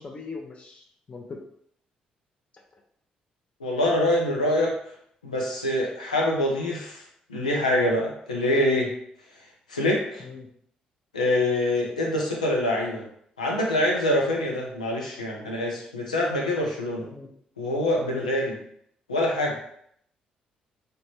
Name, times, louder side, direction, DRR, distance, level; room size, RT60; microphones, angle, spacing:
voice 1, 0.0-1.4 10.2-10.5 17.0-17.3, left 4 dB, 35° left, 1 dB, 0.4 m, -40 dB
voice 2, 3.6-4.7 5.2-7.0 7.3-8.9 9.7-10.2 11.1-13.0 13.4-17.1 17.6-18.5 19.1-19.5, left 1 dB, 85° left, -2 dB, 0.5 m, -25 dB
2.9 x 2.1 x 2.9 m, 0.68 s
figure-of-eight pair, 40°, 4 cm